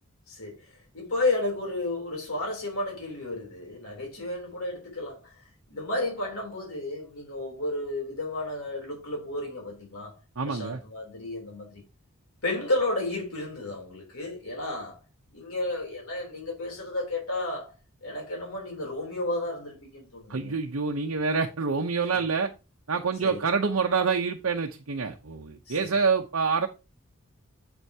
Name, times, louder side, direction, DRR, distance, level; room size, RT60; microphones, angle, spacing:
voice 1, 0.3-5.3 5.7-11.8 12.4-15.0 15.3-17.7 18.0-20.6 22.1-22.2 23.2-23.5 25.7-26.0, left 2 dB, 80° left, 3.3 m, -32 dB
voice 2, 10.4-10.8 20.3-22.5 22.9-26.7, right 5 dB, 75° right, 0.8 m, -27 dB
8.1 x 7.9 x 2.8 m
head